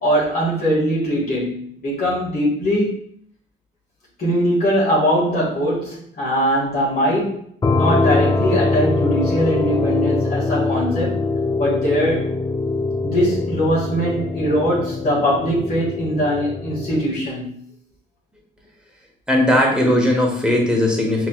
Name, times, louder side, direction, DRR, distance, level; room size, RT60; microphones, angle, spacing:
voice 1, 0.0-3.0 4.2-7.4 7.7-11.2 11.6-12.3 13.0-17.6, equal, 50° left, -6 dB, 1.8 m, -21 dB
sound 1, 7.6-17.1, left 3 dB, 20° left, 0.3 m, -23 dB
voice 2, 19.3-21.3, left 1 dB, 5° right, -1 dB, 1.3 m, -18 dB
5.7 x 3.0 x 2.3 m, 0.64 s
cardioid pair, 90°, 20 cm